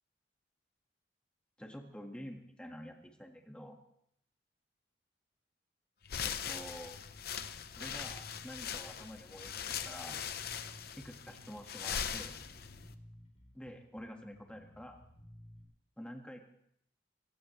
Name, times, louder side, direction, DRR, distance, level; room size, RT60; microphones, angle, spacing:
voice 1, 1.6-3.8 6.2-7.0 7.8-10.2 11.0-12.4 13.5-15.0 16.0-16.4, equal, 5° left, 2 dB, 1.8 m, -48 dB
Bass guitar, 6.0-15.6, equal, 40° left, 3.7 m, -57 dB
sound 1, 6.1-12.9, left 8 dB, 55° left, 0.8 m, -41 dB
24.5 x 16.5 x 3.2 m, 0.73 s
head